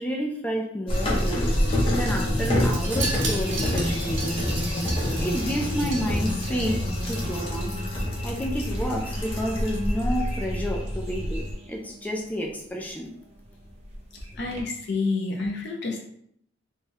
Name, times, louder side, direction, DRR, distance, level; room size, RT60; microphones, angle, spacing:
voice 1, 0.0-1.6 2.0-4.4 5.0-13.1 14.3-14.6, equal, 10° left, -1 dB, 0.4 m, -30 dB
sound 1, 0.9-11.5, left 1 dB, 30° left, 0.8 m, -27 dB
sound 2, 2.2-14.6, right 1 dB, 35° right, 0.7 m, -42 dB
Wind chime, 2.6-7.1 7.4-7.7 8.0-8.1, right 3 dB, 75° right, 1.0 m, -35 dB
voice 2, 14.4-16.0, left 3 dB, 60° left, 0 dB, 0.6 m, -28 dB
3.5 x 2.2 x 4.3 m, 0.68 s
head